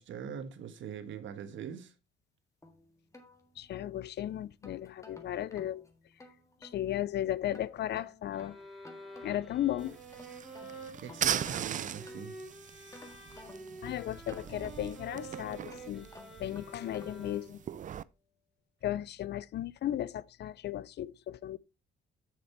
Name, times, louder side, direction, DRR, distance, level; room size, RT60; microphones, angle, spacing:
voice 1, 0.0-1.9 11.0-12.4, right 8 dB, 70° right, 1.3 m, -42 dB
sound 1, 2.6-4.0 4.4-6.8 7.5-9.6 9.9-12.5 12.9-15.1 15.6-17.3, left 2 dB, 15° left, 1.7 m, -55 dB
voice 2, 3.6-5.8 6.6-8.6 9.2-10.0 13.8-16.1 16.4-17.6 18.8-21.6, left 12 dB, 60° left, 0.4 m, -35 dB
sound 2, 8.3-17.8, right 2 dB, ahead, 2.9 m, -49 dB
sound 3, 9.8-18.0, right 9 dB, 40° right, 0.4 m, -39 dB
6.7 x 6.7 x 4.3 m
cardioid pair, 90°, 20 cm